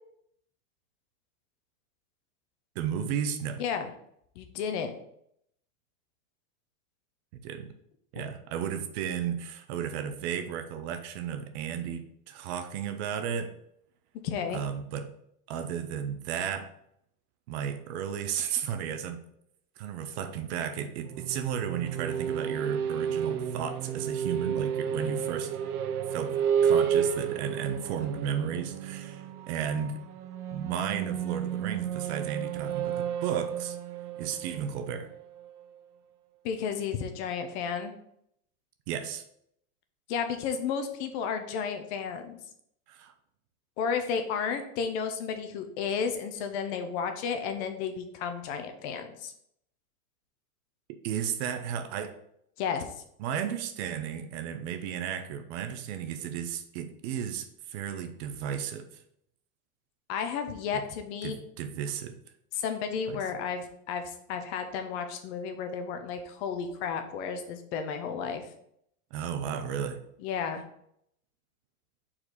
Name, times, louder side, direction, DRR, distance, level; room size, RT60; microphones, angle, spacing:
voice 1, 2.7-3.6 7.3-7.7 8.1-13.5 14.5-15.1 15.5-16.7 17.5-19.2 19.8-25.6 26.1-30.0 30.5-33.8 34.2-35.1 38.9-39.2 42.9-43.1 51.0-52.2 53.2-58.9 61.2-62.2 63.1-63.2 69.1-70.0, right 8 dB, 45° right, 8 dB, 0.7 m, -34 dB
voice 2, 3.6-3.9 4.4-4.9 8.1-8.2 14.2-14.6 36.4-37.9 40.1-42.4 43.8-49.3 52.6-52.8 60.1-61.4 62.5-68.5 70.2-70.6, left 6 dB, 45° left, 7 dB, 0.9 m, -32 dB
sound 1, 21.0-35.6, right 8 dB, 80° right, 0.8 m, -31 dB
4.7 x 4.3 x 4.9 m, 0.72 s
hypercardioid pair, 130°, 45 cm